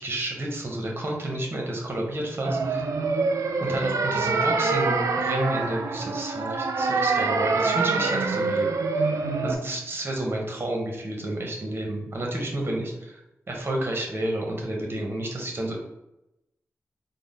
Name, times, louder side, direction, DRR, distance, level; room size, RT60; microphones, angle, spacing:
voice 1, 0.0-2.9 3.6-8.7 8.9-9.1 9.4-13.2 13.5-15.7, right 1 dB, 45° right, 0 dB, 0.9 m, -30 dB
sound 1, 2.4-9.6, right 4 dB, 75° right, 0.3 m, -25 dB
3.8 x 2.1 x 3.6 m, 0.87 s
cardioid pair, 65°, 6 cm